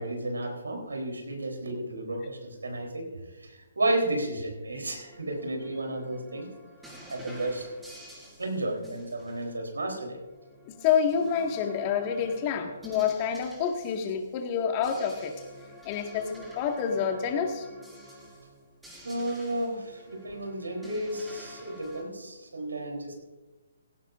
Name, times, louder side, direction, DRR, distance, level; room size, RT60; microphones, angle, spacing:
voice 1, 0.0-6.5 7.1-7.7 8.4-10.2 19.0-23.1, right 1 dB, 85° right, 3 dB, 3.7 m, -32 dB
sound 1, 4.8-14.4 14.7-22.0, equal, 5° right, 5.1 m, -49 dB
voice 2, 10.6-15.3 15.9-17.7, left 7 dB, 30° left, 4 dB, 1.9 m, -28 dB
17.0 x 16.0 x 2.6 m, 1.2 s
hypercardioid pair, 140°, 0 cm